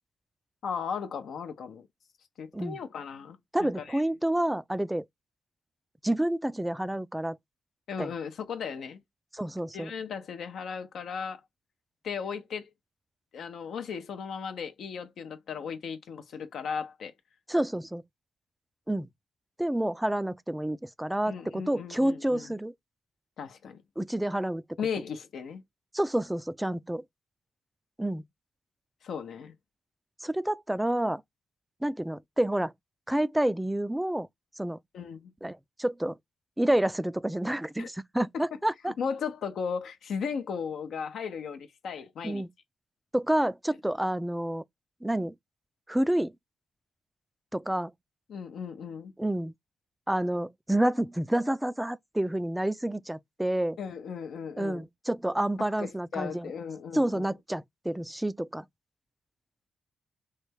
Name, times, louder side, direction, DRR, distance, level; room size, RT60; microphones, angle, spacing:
voice 1, 0.6-1.9 2.4-4.0 7.9-9.0 9.7-11.4 12.0-12.7 13.3-17.1 21.3-22.5 23.4-23.8 24.8-25.6 29.0-29.5 34.9-35.3 37.8-37.9 38.3-38.4 39.0-42.4 48.3-49.1 53.8-54.8 55.6-57.3, left 6 dB, 75° left, 0.5 m, -36 dB
voice 2, 3.5-5.0 6.0-7.4 8.0-8.1 9.3-9.9 17.5-18.0 18.9-19.1 19.6-22.7 24.0-24.6 25.9-27.0 28.0-28.2 30.2-31.2 31.8-32.7 33.1-34.3 34.6-34.8 35.4-36.2 36.6-38.9 42.2-42.5 43.1-44.6 45.0-45.3 45.9-46.3 47.5-47.9 49.2-49.5 50.1-53.8 54.6-56.5 56.9-58.6, right 1 dB, 10° right, 0.3 m, -29 dB
3.2 x 2.2 x 3.2 m
cardioid pair, 70°, 0 cm